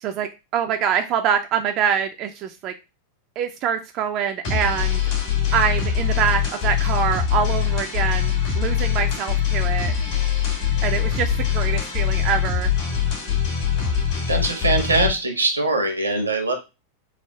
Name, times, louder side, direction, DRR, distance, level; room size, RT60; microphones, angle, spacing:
voice 1, 0.0-2.7 3.4-5.0 5.5-9.9 10.8-12.7, right 8 dB, 35° right, 5 dB, 0.3 m, -25 dB
sound 1, 4.4-15.1, left 9 dB, 50° left, 1.7 m, -23 dB
voice 2, 14.3-16.5, right 2 dB, 80° right, 4 dB, 0.8 m, -22 dB
3.5 x 2.4 x 3.3 m, 0.27 s
figure-of-eight pair, 90°, 0 cm